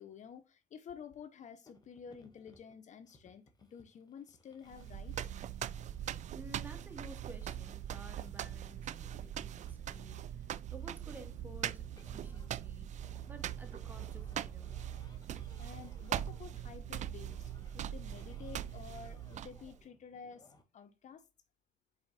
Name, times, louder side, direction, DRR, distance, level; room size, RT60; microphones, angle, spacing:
voice 1, 0.0-5.2 15.6-21.2, left 7 dB, 55° left, 0.7 m, -51 dB
sound 1, 1.7-20.6, left 2 dB, 25° left, 1.7 m, -64 dB
sound 2, 4.7-19.8, right 10 dB, 55° right, 0.4 m, -41 dB
voice 2, 6.3-12.9 13.3-14.8, right 1 dB, 10° right, 1.8 m, -53 dB
4.9 x 4.7 x 4.1 m
supercardioid pair, 75°, 15 cm